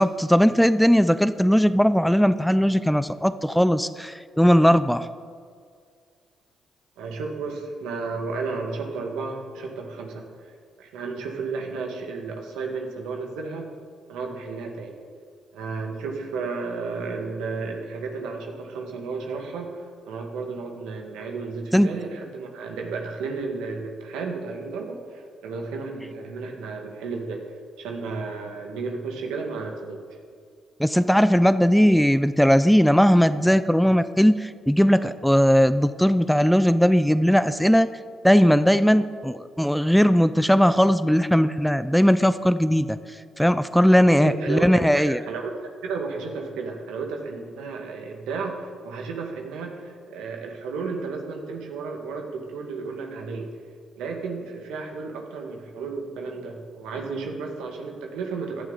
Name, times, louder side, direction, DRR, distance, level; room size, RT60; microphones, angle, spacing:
voice 1, 0.0-5.1 21.7-21.9 30.8-37.9 38.2-43.0 43.4-45.2, equal, ahead, 13 dB, 0.5 m, -18 dB
voice 2, 7.0-10.3 10.8-13.7 14.1-15.0 15.5-27.4 27.8-30.0 44.1-44.8 45.1-45.5 45.8-53.5 54.0-58.6, right 4 dB, 85° right, 2 dB, 2.0 m, -33 dB
16.5 x 11.5 x 4.1 m, 2.1 s
supercardioid pair, 70°, 0 cm